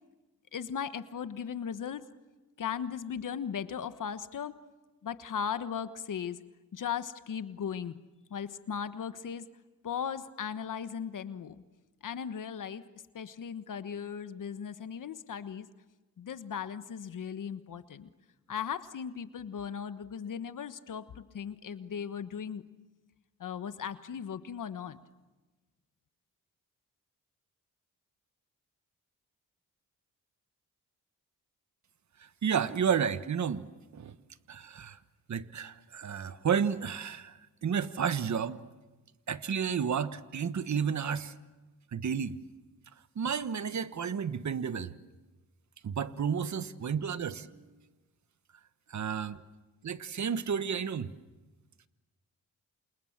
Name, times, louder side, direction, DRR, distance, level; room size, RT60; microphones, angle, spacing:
voice 1, 0.5-2.0 2.6-4.5 5.0-6.4 6.7-8.0 8.3-9.5 9.8-11.6 12.0-12.8 13.1-15.7 16.2-18.1 18.5-22.6 23.4-25.0, left 7 dB, 65° left, 12 dB, 1.3 m, -37 dB
voice 2, 32.2-33.7 33.9-34.1 34.5-35.0 35.3-38.6 39.3-41.3 41.9-42.4 43.1-44.9 45.8-47.7 48.9-49.4 49.8-51.1, right 7 dB, 55° right, 13 dB, 1.3 m, -31 dB
28.5 x 28.0 x 7.4 m, 1.2 s
cardioid pair, 80°, 34 cm